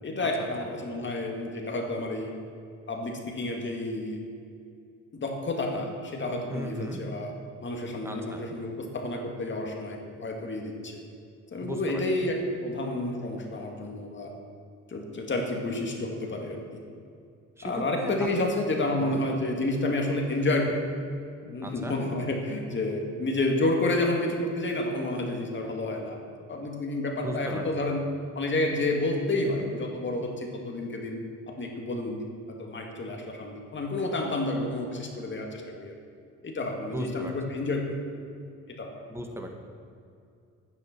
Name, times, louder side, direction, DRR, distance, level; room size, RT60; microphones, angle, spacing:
voice 1, 0.0-2.3 2.9-4.2 5.1-7.3 7.6-11.0 11.5-14.3 14.9-16.8 17.6-20.8 21.4-26.2 26.5-28.0 28.3-31.2 31.5-32.2 32.6-35.9 36.4-37.9 38.8-38.9, left 2 dB, 40° left, 1 dB, 2.2 m, -30 dB
voice 2, 6.5-7.0 8.0-8.4 11.6-12.0 17.6-18.5 18.8-19.2 21.6-22.0 27.2-27.6 36.9-37.3 39.1-39.5, equal, 10° right, 3 dB, 1.6 m, -36 dB
10.5 x 9.5 x 6.0 m, 2.5 s
cardioid pair, 90°, 30 cm